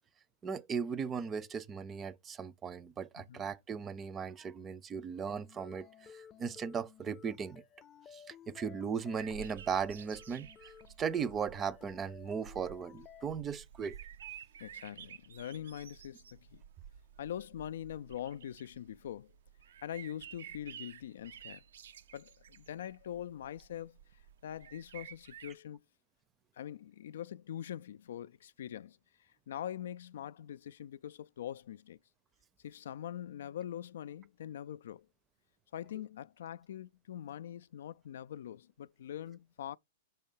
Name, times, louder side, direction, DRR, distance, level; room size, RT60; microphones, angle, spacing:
voice 1, 0.4-7.6 8.1-10.5 11.0-14.0, right 6 dB, 20° right, 0.6 m, -37 dB
sound 1, 5.3-13.3, left 8 dB, 25° left, 0.6 m, -55 dB
sound 2, 9.2-25.5, right 9 dB, 80° right, 0.5 m, -52 dB
voice 2, 14.6-16.6 17.2-19.3 19.8-21.6 22.1-24.0 24.4-25.8 26.5-32.0 32.6-35.1 35.7-39.8, left 10 dB, 75° left, 0.3 m, -43 dB
5.5 x 4.4 x 5.5 m
hypercardioid pair, 130°, 0 cm